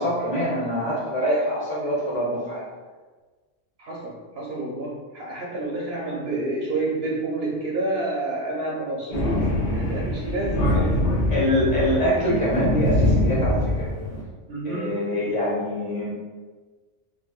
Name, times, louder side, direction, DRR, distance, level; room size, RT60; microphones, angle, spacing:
voice 1, 0.0-2.7 11.3-13.9 14.6-16.1, equal, 30° left, -6 dB, 1.0 m, -24 dB
voice 2, 3.8-11.1 14.5-15.3, right 2 dB, 65° right, -3 dB, 0.7 m, -29 dB
Thunder, 9.1-14.2, left 1 dB, 85° left, 1.0 m, -23 dB
3.9 x 2.2 x 2.3 m, 1.3 s
omnidirectional pair, 1.2 m